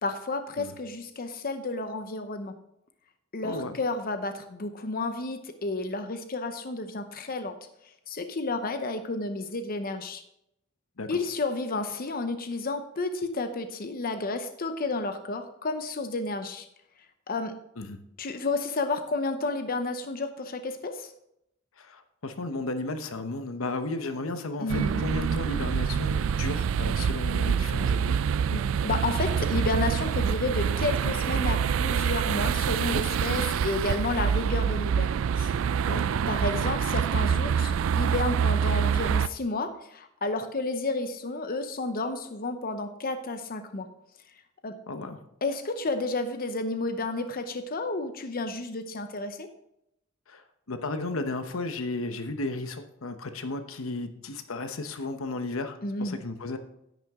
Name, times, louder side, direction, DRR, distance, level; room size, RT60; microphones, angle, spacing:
voice 1, 0.0-2.5 3.3-7.5 8.1-10.2 11.1-16.7 17.3-17.5 18.2-21.1 24.6-25.0 28.5-35.6 36.3-43.9 44.6-44.8 45.4-49.5 55.8-56.2, left 2 dB, 45° left, 8 dB, 0.8 m, -31 dB
voice 2, 3.4-3.8 11.0-11.2 17.8-18.0 21.8-28.2 35.9-36.2 44.9-45.2 50.3-56.6, left 2 dB, 85° left, 8 dB, 0.9 m, -34 dB
sound 1, 24.7-39.3, right 7 dB, 70° right, 0.3 m, -26 dB
10.5 x 9.2 x 3.6 m, 0.80 s
head